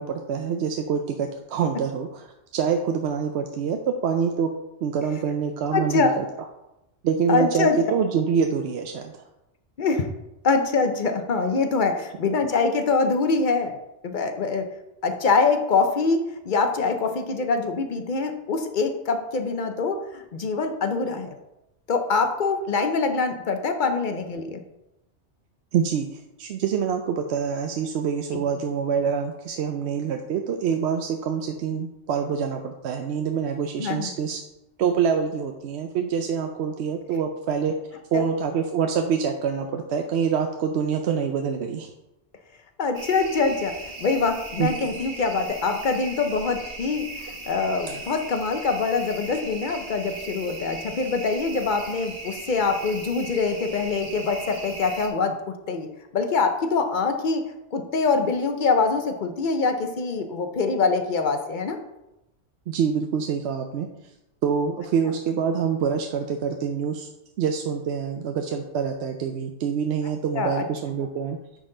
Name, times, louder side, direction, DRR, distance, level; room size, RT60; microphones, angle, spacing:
voice 1, 0.0-2.3 2.5-4.5 4.8-6.2 7.0-9.2 25.7-34.4 34.8-37.8 38.1-41.9 44.6-44.7 62.7-63.9 64.4-67.1 67.4-71.4, right 7 dB, 70° right, 5 dB, 0.8 m, -26 dB
voice 2, 5.7-6.1 7.3-7.8 9.8-10.1 10.4-13.8 14.0-14.7 15.0-21.3 21.9-24.6 33.8-34.1 38.1-38.2 42.8-55.4 55.7-57.4 57.7-61.8 70.4-70.6, left 4 dB, 50° left, 6 dB, 0.7 m, -24 dB
sound 1, 42.9-55.1, right 2 dB, 35° right, 1.0 m, -38 dB
9.4 x 4.1 x 3.8 m, 0.93 s
omnidirectional pair, 1.2 m